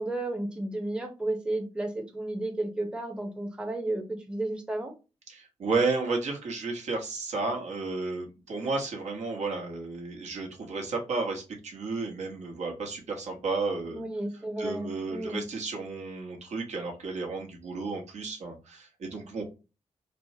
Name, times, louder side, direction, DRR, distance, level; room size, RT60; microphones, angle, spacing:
voice 1, 0.0-4.9 13.9-15.4, right 1 dB, 10° right, 4 dB, 0.6 m, -33 dB
voice 2, 5.3-14.0 14.6-19.4, right 3 dB, 85° right, 1 dB, 1.1 m, -32 dB
4.4 x 2.1 x 2.7 m, 0.30 s
wide cardioid pair, 135°, 12 cm